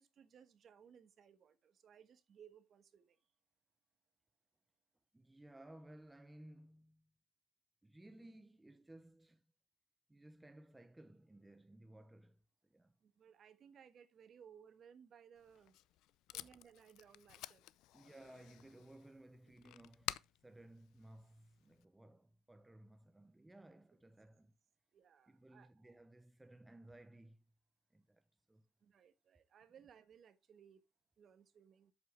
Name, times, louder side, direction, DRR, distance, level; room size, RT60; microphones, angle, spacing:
voice 1, 0.0-3.2 13.0-15.8 16.3-17.7 24.9-26.0 28.8-30.8 31.2-31.9, right 8 dB, 45° right, 1.3 m, -62 dB
voice 2, 5.1-7.1 7.8-9.4 10.1-12.9 16.3-16.6 17.9-24.5 25.3-27.4 27.9-28.7, right 1 dB, 10° right, 0.6 m, -59 dB
Packing tape duct tape, 15.4-21.8, left 15 dB, 70° left, 0.5 m, -51 dB
8.2 x 7.7 x 3.3 m
cardioid pair, 130°, 0 cm